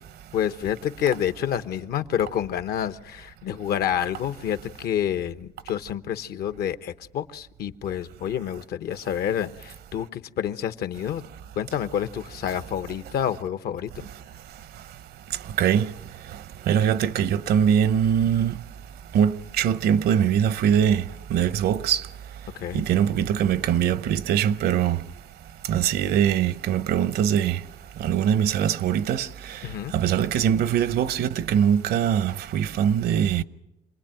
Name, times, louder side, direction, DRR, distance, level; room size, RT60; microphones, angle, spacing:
voice 1, 0.3-11.2 11.6-14.1 22.5-22.8 29.6-29.9, left 9 dB, 65° left, 1.0 m, -28 dB
voice 2, 15.6-15.9 16.7-18.6 19.1-21.0 21.3-22.1 22.7-25.0 25.7-27.6 28.0-29.7 29.9-33.4, right 9 dB, 65° right, 0.8 m, -22 dB
27.5 x 20.5 x 9.0 m
cardioid pair, 110°, 17 cm